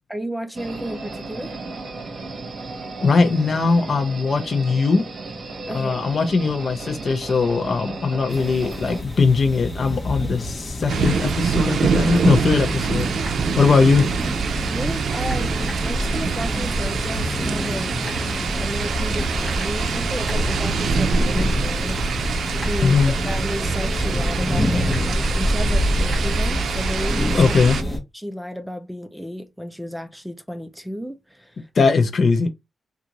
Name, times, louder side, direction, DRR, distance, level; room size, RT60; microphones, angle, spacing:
voice 1, 0.1-1.5 5.7-6.0 14.7-17.9 18.6-27.5 28.1-31.7, equal, ahead, 0.4 m, -33 dB
sound 1, 0.5-9.0, right 3 dB, 55° right, 1.2 m, -34 dB
voice 2, 3.0-5.0 5.7-13.1 13.6-14.1 22.8-23.1 27.3-27.8 31.8-32.5, left 4 dB, 50° left, 0.7 m, -19 dB
sound 2, 8.3-28.0, equal, 15° left, 1.1 m, -26 dB
sound 3, 10.9-27.8, right 6 dB, 80° right, 0.4 m, -26 dB
3.7 x 2.5 x 2.9 m
wide cardioid pair, 110°, 0 cm